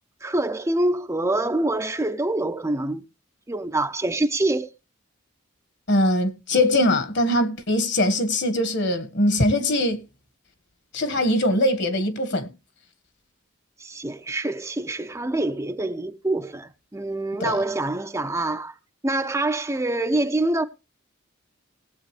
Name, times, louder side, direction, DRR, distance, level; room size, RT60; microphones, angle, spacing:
voice 1, 0.2-3.1 3.5-4.7 13.8-18.7 19.0-20.6, right 2 dB, 15° right, 0.6 m, -25 dB
voice 2, 5.9-10.0 10.9-12.5 17.4-17.6, left 1 dB, 55° left, 1.7 m, -22 dB
19.0 x 7.9 x 3.3 m
head